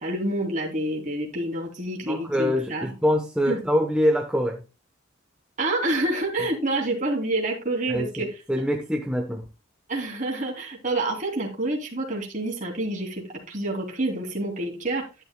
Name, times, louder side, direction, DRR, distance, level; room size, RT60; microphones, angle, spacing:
voice 1, 0.0-2.9 3.5-3.6 5.6-8.3 9.9-15.0, right 2 dB, 40° right, 3.0 m, -28 dB
voice 2, 2.1-4.6 7.9-9.5, equal, 5° right, 0.9 m, -25 dB
12.0 x 10.0 x 2.2 m
head